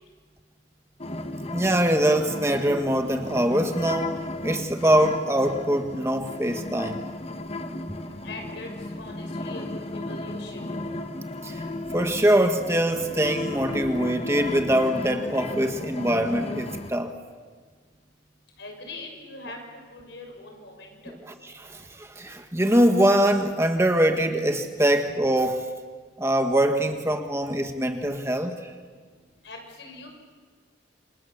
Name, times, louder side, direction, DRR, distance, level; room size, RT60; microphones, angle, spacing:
sound 1, 1.0-16.9, left 2 dB, 30° left, 1.2 m, -34 dB
voice 1, 1.5-4.2 4.4-7.0 11.4-11.6 11.9-17.2 21.6-25.8 26.2-28.7, right 1 dB, 15° right, 6 dB, 1.4 m, -23 dB
voice 2, 7.9-8.7 9.0-9.6 10.0-10.6 18.6-21.1 29.4-30.1, left 2 dB, 65° left, 3 dB, 6.5 m, -42 dB
28.5 x 26.0 x 7.2 m, 1.5 s
head